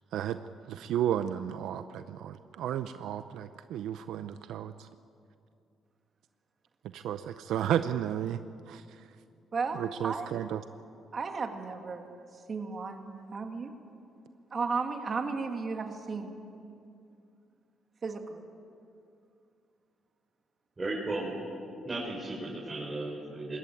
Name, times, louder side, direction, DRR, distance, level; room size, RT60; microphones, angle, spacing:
voice 1, 0.7-4.9 6.9-8.4 8.7-9.0 9.7-10.6, right 10 dB, 85° right, 11 dB, 0.6 m, -33 dB
voice 2, 9.5-10.3 11.1-12.1 12.5-13.7 14.5-16.3 18.0-18.4, right 4 dB, 40° right, 5 dB, 2.2 m, -34 dB
voice 3, 20.8-21.3 21.8-23.6, right 2 dB, 25° right, -6 dB, 5.5 m, -35 dB
21.0 x 17.5 x 9.2 m, 2.5 s
cardioid pair, 90°, 0 cm